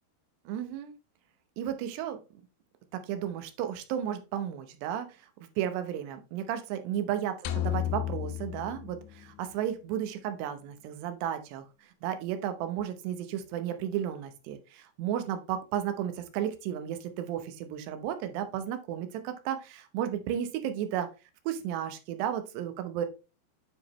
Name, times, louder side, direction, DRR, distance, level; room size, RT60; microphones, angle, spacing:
voice 1, 0.5-0.9 1.6-2.2 2.9-5.2 5.6-21.1 21.5-23.1, right 10 dB, 85° right, 9 dB, 3.0 m, -33 dB
sound 1, 7.5-9.7, left 13 dB, 85° left, 2.7 m, -33 dB
9.2 x 5.0 x 3.0 m, 0.30 s
omnidirectional pair, 4.7 m